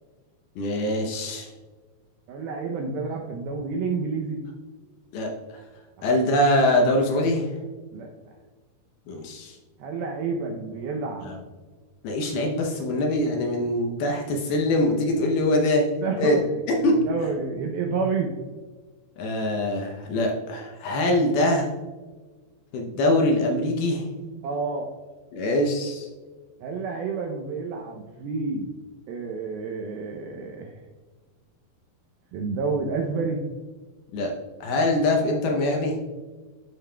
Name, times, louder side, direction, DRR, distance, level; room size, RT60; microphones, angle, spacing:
voice 1, 0.6-1.5 5.1-5.3 6.0-7.5 9.1-9.6 11.2-11.4 12.0-15.8 16.2-16.4 16.8-17.0 19.2-21.7 22.7-24.3 25.3-26.1 34.1-34.3 34.6-36.0, left 1 dB, 75° left, 1 dB, 2.5 m, -23 dB
voice 2, 2.3-4.4 7.9-8.1 9.8-11.3 16.0-16.4 16.7-18.3 24.4-24.9 26.6-28.7 29.1-30.7 32.3-33.4, right 4 dB, 80° right, 1 dB, 2.2 m, -29 dB
12.0 x 5.9 x 2.3 m, 1.3 s
omnidirectional pair, 5.0 m